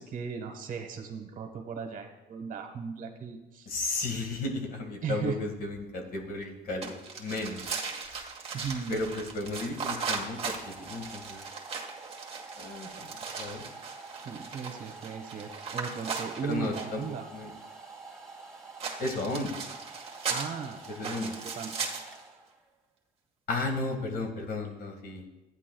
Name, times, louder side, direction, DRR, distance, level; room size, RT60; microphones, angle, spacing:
voice 1, 0.0-3.7 5.0-5.4 8.5-9.0 14.2-17.3 20.3-21.7, right 6 dB, 55° right, 5 dB, 1.3 m, -37 dB
voice 2, 3.7-7.6 8.9-11.4 12.6-13.1 13.4-13.6 16.4-17.0 17.3-17.5 19.0-19.6 20.9-21.3 23.5-25.2, left 2 dB, 65° left, 3 dB, 1.8 m, -34 dB
sound 1, 6.8-17.1 18.8-22.2, right 5 dB, 35° right, 1.6 m, -38 dB
Domestic sounds home sounds, 9.0-22.7, right 4 dB, 5° left, 1.8 m, -48 dB
14.0 x 9.7 x 2.3 m, 1.0 s
cardioid pair, 110°, 17 cm